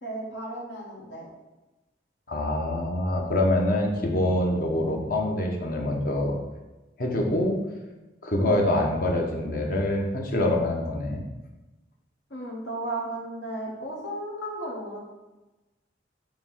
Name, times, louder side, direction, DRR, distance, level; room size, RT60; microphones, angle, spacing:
voice 1, 0.0-1.3 8.3-8.6 12.3-15.0, right 1 dB, 70° left, -3 dB, 1.5 m, -34 dB
voice 2, 2.3-6.3 7.0-7.6 8.2-11.2, left 1 dB, 50° left, 1 dB, 1.1 m, -25 dB
7.0 x 3.1 x 5.6 m, 1.1 s
head